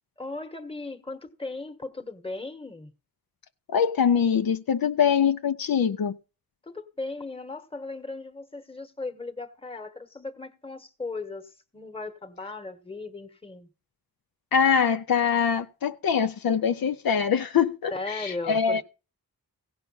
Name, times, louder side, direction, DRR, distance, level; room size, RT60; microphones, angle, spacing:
voice 1, 0.2-2.9 6.7-13.7 17.9-18.8, left 3 dB, 15° left, 1.2 m, -37 dB
voice 2, 3.7-6.2 14.5-18.8, left 7 dB, 75° left, 0.6 m, -23 dB
16.0 x 5.5 x 5.5 m
wide cardioid pair, 100°, 36 cm